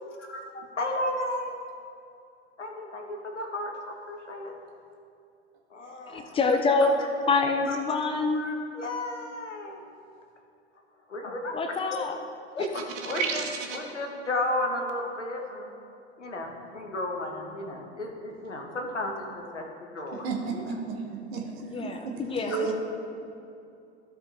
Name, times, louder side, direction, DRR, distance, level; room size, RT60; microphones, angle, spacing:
voice 1, 0.0-1.6 2.6-4.5 5.7-6.4 7.7-8.0 8.3-9.8 11.1-11.6 12.5-15.7 16.2-20.6 22.5-22.6, left 1 dB, 85° left, 2 dB, 1.2 m, -34 dB
voice 2, 6.1-7.0 7.3-8.5 11.5-12.2 21.6-22.7, left 3 dB, 15° left, 6 dB, 0.5 m, -26 dB
sound 1, 12.6-13.9, right 5 dB, 40° right, 1.0 m, -32 dB
voice 3, 20.1-22.7, right 5 dB, 60° right, 0 dB, 1.6 m, -33 dB
14.0 x 5.1 x 3.3 m, 2.6 s
figure-of-eight pair, 85°, 35 cm